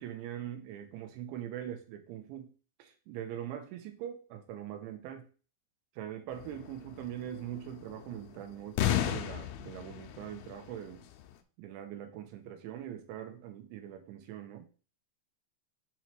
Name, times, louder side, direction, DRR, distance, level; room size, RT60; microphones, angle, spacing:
voice 1, 0.0-2.5 2.8-5.2 6.0-11.1 11.6-14.7, right 10 dB, 85° right, 6 dB, 3.2 m, -42 dB
sound 1, 6.3-11.3, left 11 dB, 85° left, 2.3 m, -34 dB
7.1 x 2.9 x 4.5 m, 0.37 s
omnidirectional pair, 5.1 m